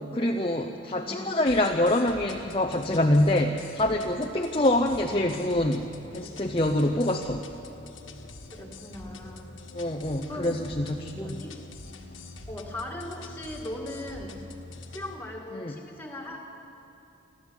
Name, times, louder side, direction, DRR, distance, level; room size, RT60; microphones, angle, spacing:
voice 1, 0.0-5.8 6.1-7.5 9.7-11.3 15.5-15.7, left 1 dB, 25° left, 3 dB, 0.8 m, -25 dB
voice 2, 0.9-1.2 8.5-9.5 10.3-10.6 11.1-11.6 12.5-14.4 14.9-16.4, left 1 dB, 10° left, 0 dB, 2.2 m, -38 dB
sound 1, 1.5-15.1, left 2 dB, 85° left, 1.6 m, -45 dB
28.5 x 12.0 x 8.2 m, 2.7 s
head